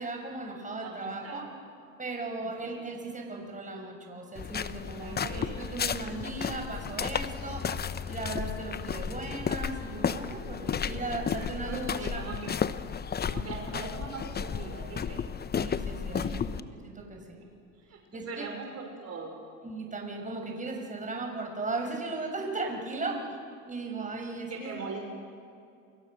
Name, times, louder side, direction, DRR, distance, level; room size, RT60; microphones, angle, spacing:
voice 1, 0.0-1.5 2.0-7.6 8.1-12.2 15.6-16.2 16.9-17.4 18.1-18.5 19.6-23.2 23.7-24.8, right 3 dB, 20° right, 2 dB, 6.1 m, -37 dB
voice 2, 0.8-1.5 2.4-2.9 5.0-5.6 8.1-8.2 10.8-11.1 11.4-12.4 13.2-15.2 16.1-16.5 17.8-19.4 22.9-23.2 24.5-25.0, right 4 dB, 35° right, 2 dB, 5.8 m, -41 dB
sound 1, 4.4-16.6, left 7 dB, 25° left, 1.0 m, -33 dB
29.0 x 25.0 x 6.6 m, 2.5 s
hypercardioid pair, 80°, 41 cm